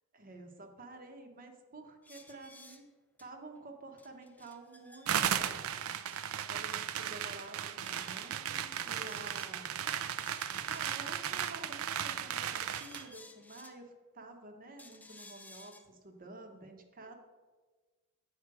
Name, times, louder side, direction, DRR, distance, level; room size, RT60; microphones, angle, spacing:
voice 1, 0.1-2.9 3.2-9.6 10.4-17.1, right 2 dB, 40° right, 5 dB, 1.0 m, -50 dB
sound 1, 2.0-2.8 3.2-3.3 3.5-3.6 4.0-5.4 6.1-6.2 6.5-6.6 6.9-8.3 9.0-11.2 12.0-13.8 14.8-15.8, left 2 dB, 5° left, 0.5 m, -57 dB
sound 2, 5.1-13.1, right 9 dB, 70° right, 0.4 m, -36 dB
8.3 x 5.7 x 4.7 m, 1.3 s
head